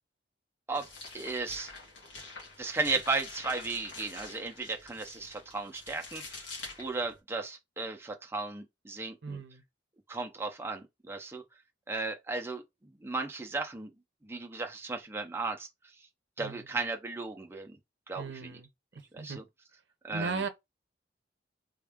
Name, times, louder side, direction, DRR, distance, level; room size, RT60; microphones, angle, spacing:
sound 1, 0.7-7.2, left 3 dB, 80° left, 1.5 m, -46 dB
voice 1, 1.1-1.7 2.6-6.5 6.8-9.4 10.1-11.4 11.9-12.6 13.0-13.9 14.2-15.7 16.4-17.8 18.1-18.6 19.1-19.4 20.0-20.4, right 3 dB, 15° right, 0.5 m, -35 dB
voice 2, 9.2-9.6 16.4-16.7 18.2-18.7 18.9-19.4 20.1-20.5, right 4 dB, 80° right, 0.6 m, -37 dB
3.5 x 2.4 x 3.4 m
head